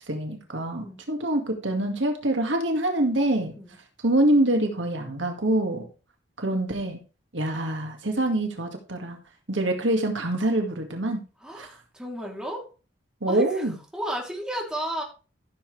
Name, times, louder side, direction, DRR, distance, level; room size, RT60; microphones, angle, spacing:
voice 1, 0.0-3.5 4.0-5.9 6.4-7.0 7.3-9.2 9.5-11.2 11.6-11.7 13.2-13.7, right 1 dB, 70° right, 3 dB, 2.1 m, -25 dB
voice 2, 11.4-12.7 13.3-13.7 13.9-15.0, right 1 dB, 5° right, -2 dB, 3.2 m, -33 dB
14.5 x 7.5 x 3.4 m, 0.34 s
head